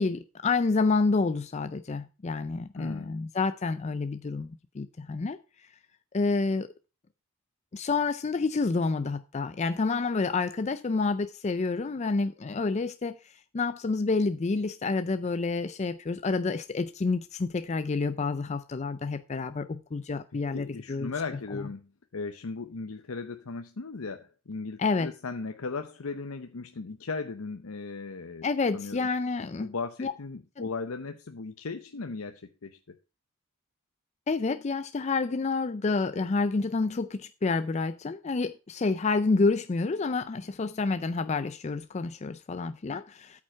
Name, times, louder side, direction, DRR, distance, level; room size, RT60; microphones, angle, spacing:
voice 1, 0.0-5.7 6.1-6.7 7.7-21.1 21.5-21.6 24.8-25.1 28.4-29.7 30.0-30.1 30.6-30.7 34.3-43.4, left 3 dB, 30° left, 0.4 m, -29 dB
voice 2, 2.8-3.1 20.5-28.5 28.7-29.1 29.6-33.0, left 4 dB, 90° left, 0.8 m, -37 dB
8.9 x 7.4 x 4.5 m
head